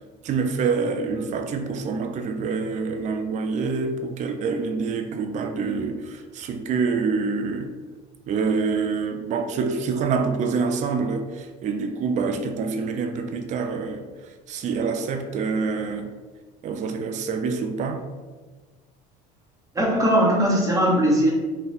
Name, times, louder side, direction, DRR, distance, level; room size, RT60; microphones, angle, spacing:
voice 1, 0.2-7.7 8.3-14.1 14.5-16.1 16.6-18.0, right 5 dB, 40° right, 0.4 m, -26 dB
voice 2, 19.7-21.3, equal, 15° right, 1.0 m, -19 dB
2.4 x 2.2 x 3.9 m
supercardioid pair, 100°, 20 cm